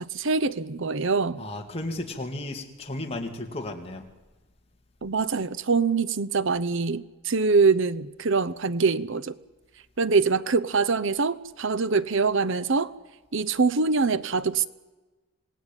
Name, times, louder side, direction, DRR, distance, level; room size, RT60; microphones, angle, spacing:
voice 1, 0.0-1.4 5.0-9.4 10.0-12.9 13.3-14.7, right 4 dB, 60° right, 16 dB, 0.8 m, -24 dB
voice 2, 1.4-4.1, left 1 dB, 30° left, 3 dB, 2.5 m, -34 dB
27.5 x 18.5 x 9.1 m, 1.2 s
head